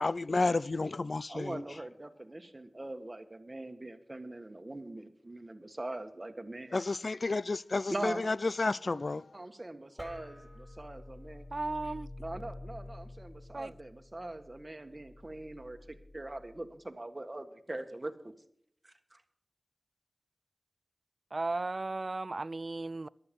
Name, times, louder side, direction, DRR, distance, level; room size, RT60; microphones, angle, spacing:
voice 1, 0.0-1.6 6.7-9.3, left 3 dB, 60° left, 0.4 m, -31 dB
voice 2, 1.3-6.8 7.9-8.3 9.3-11.5 12.2-18.3 18.8-19.2, right 1 dB, 30° right, 1.6 m, -42 dB
sound 1, 10.0-16.7, left 1 dB, 5° left, 4.2 m, -49 dB
voice 3, 11.5-12.1 13.5-13.7 21.3-23.1, right 2 dB, 45° right, 0.5 m, -35 dB
15.0 x 12.0 x 5.4 m
wide cardioid pair, 80°, 0 cm